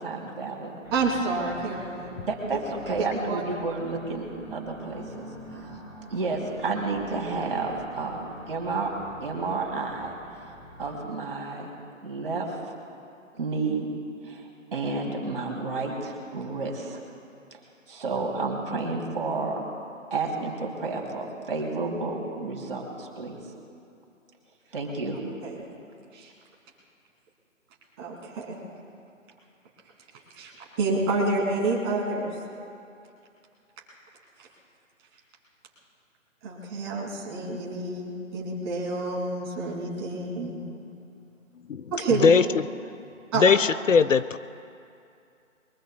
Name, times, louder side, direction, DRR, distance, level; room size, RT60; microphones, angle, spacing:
voice 1, 0.0-0.7 2.2-5.3 5.6-5.7 6.1-8.9 9.2-10.1 10.8-11.7 12.0-12.6 13.3-14.0 14.2-14.4 14.7-17.0 17.9-19.7 20.1-23.4 24.7-25.2, right 3 dB, 45° right, 0 dB, 2.9 m, -31 dB
sound 1, 0.8-10.9, equal, 5° left, 4.6 m, -45 dB
voice 2, 0.9-2.1 3.0-3.4 25.4-25.6 26.1-26.3 28.0-28.6 30.3-30.5 30.8-32.3 36.4-40.6 41.9-42.3 43.3-43.4, right 3 dB, 20° right, -3 dB, 2.7 m, -28 dB
voice 3, 43.4-44.4, left 5 dB, 70° left, 14 dB, 0.7 m, -19 dB
23.5 x 23.0 x 2.3 m, 2.5 s
figure-of-eight pair, 150°, 39 cm